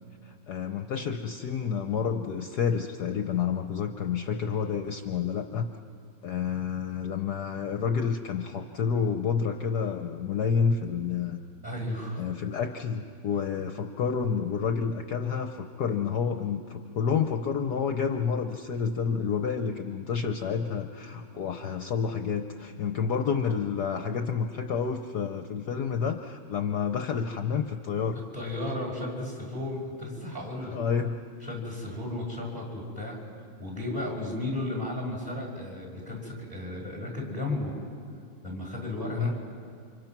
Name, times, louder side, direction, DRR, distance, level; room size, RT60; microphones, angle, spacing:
voice 1, 0.2-5.7 6.2-11.4 12.2-28.2 30.7-31.1 39.2-39.4, left 6 dB, 60° left, 6 dB, 1.3 m, -29 dB
voice 2, 11.6-12.2 28.3-30.8 31.4-33.2 33.6-37.7 38.4-39.3, left 1 dB, 20° right, 0 dB, 5.4 m, -34 dB
29.5 x 26.5 x 6.0 m, 2.3 s
omnidirectional pair, 2.3 m